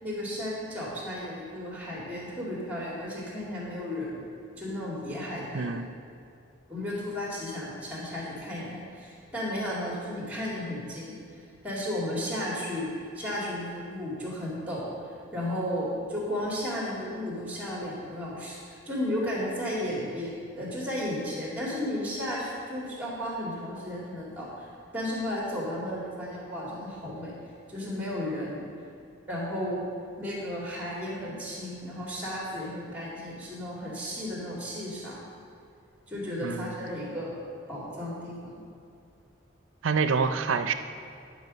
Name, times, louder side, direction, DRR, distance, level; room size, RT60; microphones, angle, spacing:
voice 1, 0.0-4.2 4.6-5.7 6.7-11.2 11.6-12.9 13.1-27.3 27.7-28.7 29.3-29.8 30.2-35.3 36.1-37.4 37.7-38.6, left 1 dB, 10° right, -5 dB, 2.3 m, -34 dB
voice 2, 5.5-5.9 36.4-36.8 39.8-40.7, right 5 dB, 85° right, 10 dB, 0.5 m, -27 dB
11.0 x 5.1 x 6.3 m, 2.4 s
head